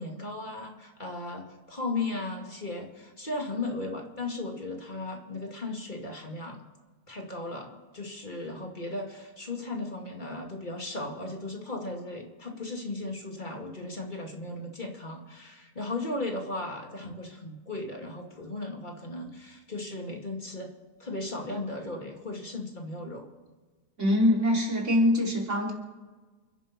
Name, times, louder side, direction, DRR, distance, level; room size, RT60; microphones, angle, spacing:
voice 1, 0.0-6.6 7.1-20.7 21.0-23.3, left 2 dB, 30° left, 1 dB, 2.4 m, -36 dB
voice 2, 24.0-25.7, left 1 dB, 50° right, -1 dB, 3.6 m, -23 dB
29.0 x 10.5 x 4.3 m, 1.3 s
omnidirectional pair, 1.7 m